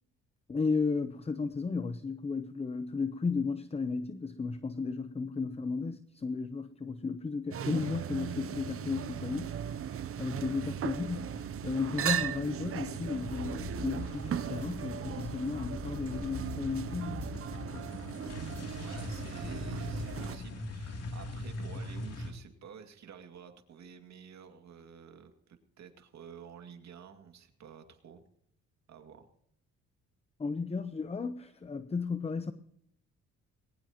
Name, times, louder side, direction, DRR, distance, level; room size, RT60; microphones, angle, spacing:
voice 1, 0.5-9.6 10.2-11.3 11.6-17.2 30.4-32.5, left 4 dB, 20° left, 0.8 m, -34 dB
sound 1, 7.5-20.4, right 9 dB, 50° right, 0.7 m, -38 dB
sound 2, 11.2-12.0 12.2-22.3, left 2 dB, 55° left, 2.9 m, -41 dB
voice 2, 18.8-28.2 28.9-29.3, right 7 dB, 65° right, 2.3 m, -51 dB
20.5 x 18.5 x 3.0 m
cardioid pair, 90°, 30 cm